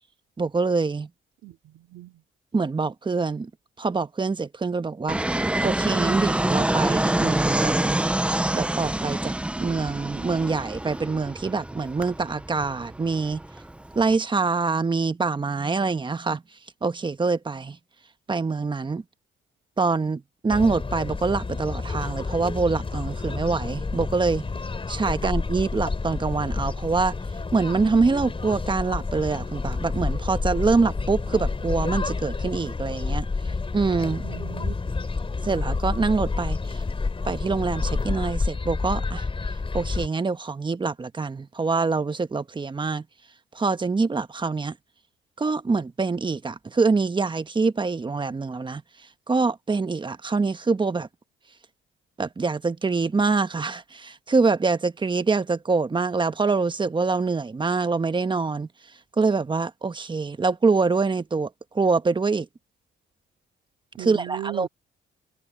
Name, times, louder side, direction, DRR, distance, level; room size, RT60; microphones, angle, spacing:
voice 1, 0.4-1.1 2.5-3.5 3.8-5.2 5.6-8.0 8.5-9.3 9.6-13.4 13.9-16.4 16.8-17.8 18.3-19.0 19.8-24.4 24.9-27.2 27.5-33.3 33.7-34.2 35.4-36.8 37.2-39.3 39.7-43.0 43.5-44.7 45.4-48.8 49.3-51.1 52.2-58.7 59.2-61.5 61.7-62.5 64.0-64.7, right 4 dB, 25° right, 1.2 m, -25 dB
voice 2, 1.4-2.1 34.2-34.8 64.0-64.7, right 14 dB, 80° right, 2.5 m, -37 dB
Fixed-wing aircraft airplane, 5.1-14.1, right 1 dB, 5° right, 0.6 m, -26 dB
sound 1, 20.5-40.1, left 4 dB, 25° left, 3.9 m, -29 dB
cardioid pair, 90°, 20 cm